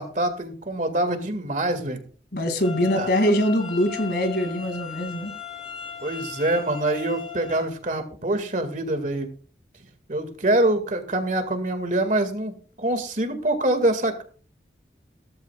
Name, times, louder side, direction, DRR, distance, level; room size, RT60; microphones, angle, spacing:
voice 1, 0.0-2.0 3.0-3.1 6.0-9.3 10.1-14.2, right 1 dB, 45° right, 8 dB, 2.1 m, -25 dB
voice 2, 2.3-5.3, equal, 60° left, 7 dB, 2.5 m, -23 dB
sound 1, 2.6-7.6, left 7 dB, 35° left, 4.4 m, -37 dB
16.5 x 14.0 x 2.4 m, 0.39 s
head